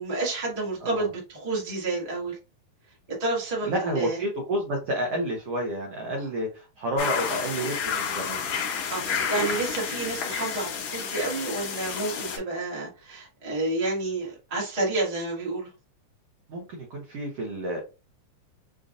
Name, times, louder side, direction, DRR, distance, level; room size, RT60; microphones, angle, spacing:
voice 1, 0.0-2.4 3.2-4.2 8.9-15.7, right 2 dB, 25° right, -5 dB, 0.8 m, -30 dB
voice 2, 3.6-8.4 16.5-16.6 16.9-17.8, right 1 dB, 75° right, 0 dB, 1.4 m, -30 dB
sound 1, 7.0-12.4, left 7 dB, 70° left, 1.8 m, -30 dB
5.4 x 2.5 x 2.5 m, 0.30 s
omnidirectional pair, 3.9 m